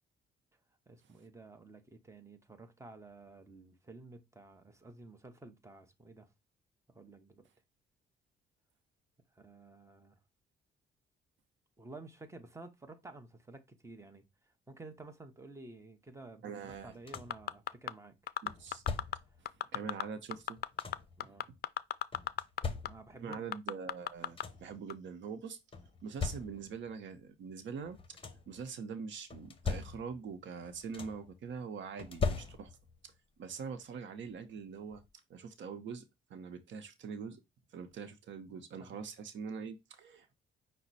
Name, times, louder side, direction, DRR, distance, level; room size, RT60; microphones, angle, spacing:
voice 1, 0.9-6.3 6.9-7.5 9.3-10.2 11.8-18.2 21.2-21.5 22.8-23.4 38.8-39.1, right 3 dB, 15° right, 1.0 m, -52 dB
voice 2, 16.4-16.9 18.4-18.8 19.4-20.6 21.2-21.3 23.2-25.6 26.0-28.2 28.5-32.8 33.0-33.1 33.4-35.0 35.3-36.0 36.3-37.4 37.7-40.3, right 6 dB, 70° right, 0.8 m, -43 dB
sound 1, 16.7-17.5 18.5-19.4 20.3-21.2 22.1-23.3 23.9-24.0 24.2-24.8 25.7-26.9 27.8-28.6 29.3-30.3 30.6-31.4 32.0-33.0 34.3-34.4 34.9-35.1, left 4 dB, 25° left, 0.9 m, -40 dB
sound 2, 17.1-17.9 18.3-19.2 19.5-20.0 20.3-22.6 22.9-23.0 23.3-24.4 24.9-25.0, left 12 dB, 55° left, 0.4 m, -34 dB
5.8 x 2.2 x 4.1 m
cardioid pair, 90°, 20 cm